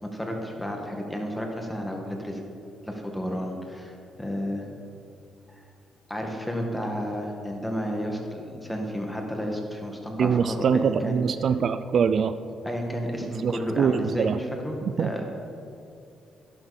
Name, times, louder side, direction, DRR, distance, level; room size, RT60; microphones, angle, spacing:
voice 1, 0.0-2.4 2.9-3.9 4.2-4.7 5.5-5.6 6.1-11.2 12.6-15.3, equal, 5° left, 1 dB, 2.0 m, -32 dB
voice 2, 10.2-12.3 13.2-14.4 15.0-15.1, right 6 dB, 55° right, 12 dB, 0.4 m, -24 dB
12.0 x 11.5 x 4.4 m, 2.6 s
cardioid pair, 90°, 0 cm